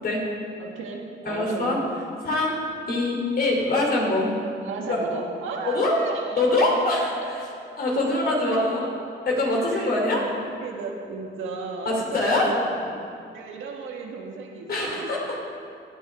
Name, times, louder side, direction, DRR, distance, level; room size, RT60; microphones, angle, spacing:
voice 1, 0.6-1.8 4.6-6.7 6.9-7.3 8.1-8.9 9.6-10.3 10.6-12.9 13.3-15.4, right 4 dB, 85° right, 1 dB, 1.7 m, -35 dB
voice 2, 1.3-1.8 2.2-2.5 2.9-4.3 4.8-5.0 5.6-5.9 6.4-7.1 7.8-8.8 9.2-10.2 11.8-12.5 14.7-15.2, left 2 dB, 50° left, -2 dB, 3.4 m, -23 dB
17.0 x 10.0 x 3.6 m, 2.4 s
cardioid pair, 90°, 20 cm